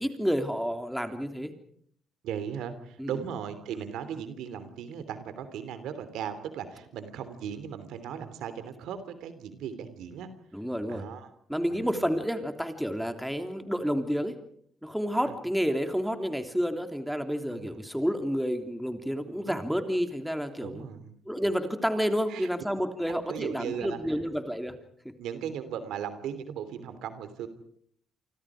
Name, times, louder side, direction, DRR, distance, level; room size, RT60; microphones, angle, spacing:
voice 1, 0.0-1.5 3.0-3.1 10.5-11.0 11.5-14.3 14.8-20.8 21.2-24.7, equal, ahead, 6 dB, 3.2 m, -30 dB
voice 2, 2.2-10.3 10.9-11.3 11.7-12.1 15.2-15.4 17.5-18.0 19.3-19.5 20.6-21.1 22.3-22.5 23.3-24.2 25.2-27.5, right 8 dB, 85° right, 11 dB, 3.1 m, -37 dB
28.5 x 25.0 x 5.0 m, 0.64 s
cardioid pair, 90°, 0 cm